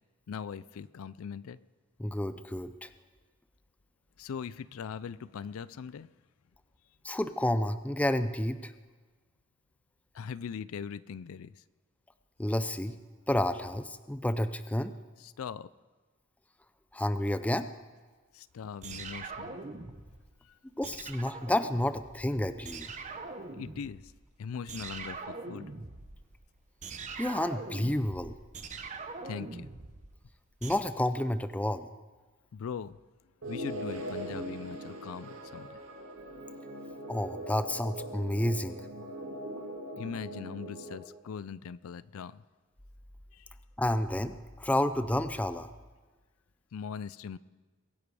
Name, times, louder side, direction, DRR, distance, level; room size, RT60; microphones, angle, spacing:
voice 1, 0.3-1.6 4.2-6.1 10.1-11.5 15.2-15.7 18.3-19.6 23.6-24.0 24.4-25.2 25.5-25.7 29.2-29.7 32.5-33.0 33.5-35.8 40.0-42.4 43.3-43.5 46.7-47.4, left 6 dB, 70° left, 0.4 m, -40 dB
voice 2, 2.0-2.9 7.0-8.7 12.4-13.0 13.3-14.9 16.9-17.7 20.8-22.9 27.2-28.3 30.6-31.9 37.1-38.8 43.8-45.7, left 1 dB, 5° left, 0.4 m, -30 dB
sound 1, 18.8-20.3 20.8-22.4 22.6-24.2 24.7-30.8, right 4 dB, 35° right, 0.9 m, -43 dB
sound 2, 33.4-41.0, right 1 dB, 65° right, 2.0 m, -41 dB
22.5 x 10.5 x 4.8 m
head